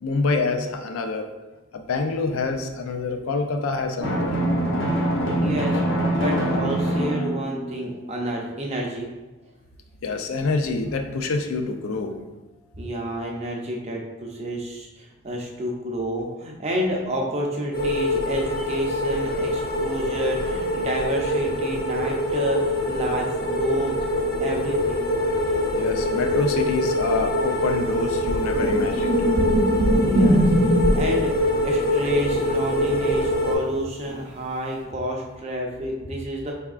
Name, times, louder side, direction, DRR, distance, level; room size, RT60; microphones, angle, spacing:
voice 1, 0.0-1.3 1.7-4.3 10.0-12.2 25.7-29.3, left 3 dB, 85° left, 5 dB, 0.4 m, -26 dB
Drum, 4.0-7.8, right 1 dB, 70° left, 0.9 m, -24 dB
voice 2, 5.4-9.1 12.7-24.0 24.4-25.1 30.1-36.5, equal, 30° right, 0 dB, 0.5 m, -29 dB
sound 1, 17.7-33.6, left 1 dB, 45° left, 0.7 m, -24 dB
sound 2, 28.3-31.2 34.0-34.2, equal, 75° right, 0.6 m, -21 dB
4.5 x 3.4 x 2.4 m, 1.1 s
head